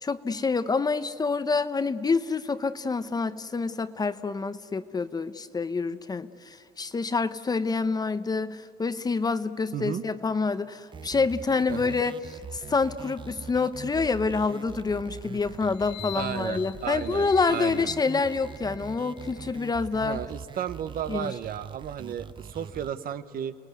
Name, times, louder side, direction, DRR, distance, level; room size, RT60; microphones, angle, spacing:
voice 1, 0.0-12.2 12.5-20.2 21.1-21.3, left 4 dB, 25° left, 13 dB, 0.8 m, -27 dB
voice 2, 9.7-10.0 11.7-12.0 16.1-17.9 19.9-23.5, right 9 dB, 60° right, 12 dB, 1.0 m, -34 dB
sound 1, 10.9-22.9, right 6 dB, 30° right, 0.7 m, -42 dB
sound 2, 15.6-19.7, left 13 dB, 75° left, 0.8 m, -45 dB
29.5 x 19.5 x 9.5 m, 2.3 s
cardioid pair, 110°, 17 cm